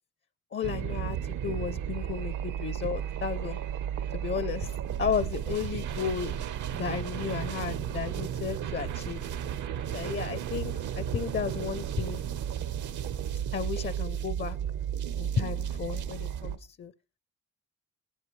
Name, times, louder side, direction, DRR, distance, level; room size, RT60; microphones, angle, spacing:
voice 1, 0.5-3.6 4.1-4.7 5.0-6.3 6.7-9.2 9.9-12.2 13.5-14.6 15.2-16.9, left 7 dB, 40° left, 0.5 m, -33 dB
sound 1, 0.6-16.6, right 9 dB, 75° right, 1.0 m, -33 dB
20.0 x 11.0 x 3.2 m
cardioid pair, 90°, 30 cm